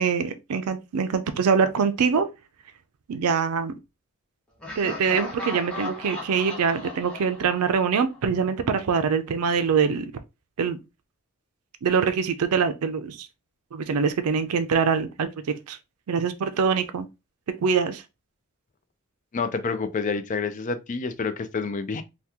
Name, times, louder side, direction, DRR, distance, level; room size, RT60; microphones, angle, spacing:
voice 1, 0.0-2.3 3.1-3.7 4.8-10.1 10.6-10.8 11.8-13.3 13.7-15.8 16.1-17.1 17.6-18.0, right 6 dB, 85° right, 0.4 m, -24 dB
Laughter, 4.6-8.5, left 3 dB, 5° left, 0.8 m, -37 dB
voice 2, 19.3-22.0, left 4 dB, 35° left, 0.4 m, -28 dB
2.8 x 2.2 x 3.5 m
head